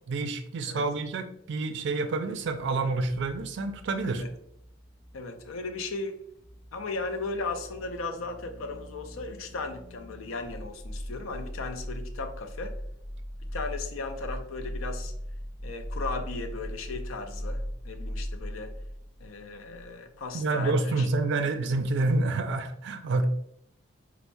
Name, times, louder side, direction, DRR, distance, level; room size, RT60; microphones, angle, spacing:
voice 1, 0.1-4.2 20.3-23.2, right 3 dB, 60° right, 9 dB, 0.3 m, -28 dB
sound 1, 2.4-19.9 20.2-20.3, equal, 40° left, 0.9 m, -40 dB
voice 2, 5.1-6.2 6.7-12.7 13.5-15.1 15.6-18.7 19.2-21.1 21.4-21.5, left 3 dB, 90° left, 7 dB, 0.5 m, -36 dB
4.4 x 2.0 x 2.6 m, 0.73 s
head